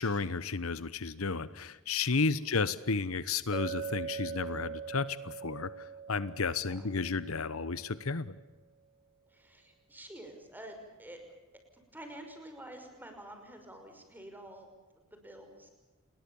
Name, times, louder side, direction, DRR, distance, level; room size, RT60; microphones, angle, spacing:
voice 1, 0.0-8.4, left 4 dB, 70° left, 16 dB, 1.1 m, -32 dB
Chink clink, 3.5-8.0, right 6 dB, 30° right, 2.8 m, -42 dB
voice 2, 9.3-11.4 11.9-15.7, right 1 dB, 10° right, 4 dB, 5.7 m, -49 dB
30.0 x 21.5 x 7.2 m, 1.2 s
head